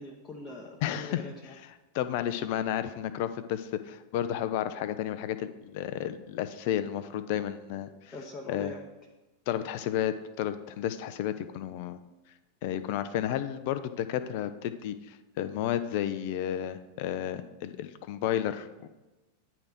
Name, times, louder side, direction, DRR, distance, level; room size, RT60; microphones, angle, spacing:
voice 1, 0.0-1.5 8.1-8.8, left 2 dB, 25° left, -1 dB, 0.8 m, -42 dB
voice 2, 0.8-8.2 8.5-8.7 9.5-12.0 12.6-18.9, left 11 dB, 50° left, 12 dB, 0.4 m, -32 dB
9.7 x 3.4 x 5.9 m, 1.1 s
figure-of-eight pair, 90°, 0 cm